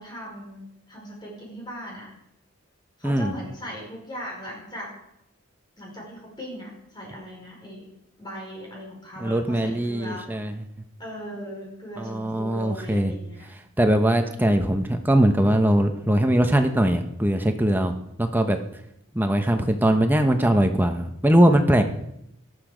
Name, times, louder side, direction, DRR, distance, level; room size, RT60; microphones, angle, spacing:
voice 1, 0.0-2.1 3.0-4.9 5.8-7.9 8.2-10.3 11.0-13.5, equal, 20° left, -2 dB, 5.0 m, -38 dB
voice 2, 3.0-3.3 9.2-10.6 12.0-13.1 13.8-17.9 18.2-18.6 19.1-21.8, right 1 dB, 10° right, 6 dB, 0.9 m, -21 dB
18.0 x 12.5 x 5.1 m, 0.80 s
head